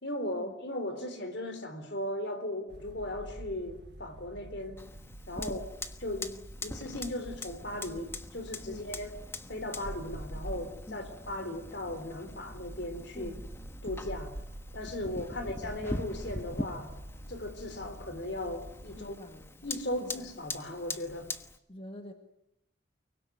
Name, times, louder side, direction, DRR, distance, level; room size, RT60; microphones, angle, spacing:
voice 1, 0.0-4.8 5.3-5.6 6.0-9.1 9.5-13.3 13.8-14.4 14.7-16.9 17.3-19.1 19.6-21.3, left 1 dB, 55° left, 9 dB, 3.8 m, -37 dB
sound 1, 2.7-19.1, right 1 dB, 55° right, 1.5 m, -47 dB
Fire, 4.8-21.6, left 2 dB, 10° left, 1.2 m, -43 dB
voice 2, 5.3-5.7 8.7-8.9 10.9-11.1 13.1-13.4 15.3-15.4 19.0-20.3 21.7-22.1, left 1 dB, 30° left, 5 dB, 1.8 m, -47 dB
24.5 x 23.5 x 9.4 m, 0.79 s
head